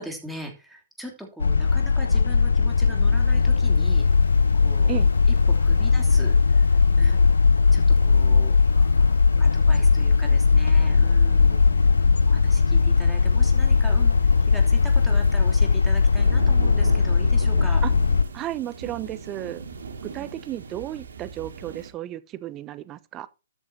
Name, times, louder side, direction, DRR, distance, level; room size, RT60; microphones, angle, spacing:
voice 1, 0.0-4.0 4.6-5.0 5.5-6.7 7.0-7.2 7.7-11.7 12.3-14.1 14.5-17.8 20.1-20.3, equal, ahead, 3.0 m, -40 dB
sound 1, 1.4-18.2, left 4 dB, 75° left, 0.6 m, -19 dB
sound 2, 2.7-21.9, right 5 dB, 65° right, 2.2 m, -41 dB
voice 2, 18.3-19.6 20.1-23.3, right 13 dB, 25° right, 0.8 m, -33 dB
13.0 x 8.0 x 2.8 m
figure-of-eight pair, 125°, 0 cm